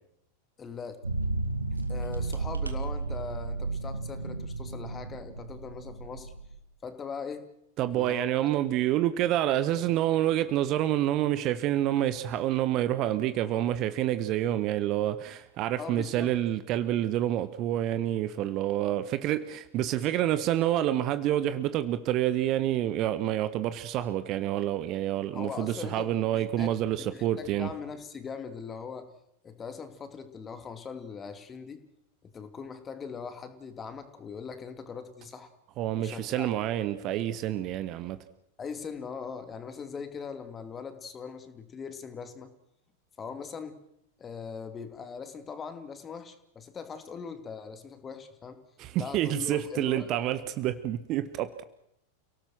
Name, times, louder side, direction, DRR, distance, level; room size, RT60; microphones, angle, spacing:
voice 1, 0.6-1.0 1.7-6.3 6.8-7.5 7.9-8.3 15.8-16.3 25.3-29.1 29.4-31.9 32.2-35.5 36.0-36.5 38.6-42.5 43.2-43.8 44.2-48.6 49.0-50.1, left 6 dB, 20° left, 9 dB, 2.6 m, -41 dB
sound 1, 1.0-6.6, right 3 dB, 80° right, 2.1 m, -33 dB
voice 2, 7.8-27.7 35.8-38.2 48.8-51.6, right 12 dB, 35° right, 13 dB, 1.4 m, -28 dB
30.0 x 18.0 x 6.3 m, 0.75 s
figure-of-eight pair, 90°, 0 cm